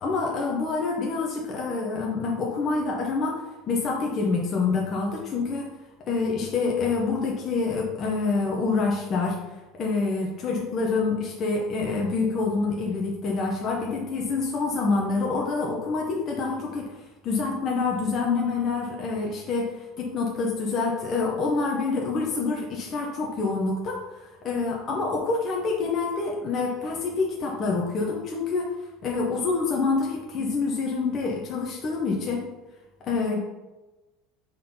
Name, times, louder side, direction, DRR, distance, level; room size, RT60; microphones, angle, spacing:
voice 1, 0.0-5.7 6.1-9.4 9.7-16.9 17.2-24.0 24.4-28.7 29.0-32.5 33.0-33.4, left 4 dB, 35° left, -1 dB, 0.9 m, -27 dB
4.6 x 4.0 x 5.6 m, 1.1 s
cardioid pair, 150°, 0 cm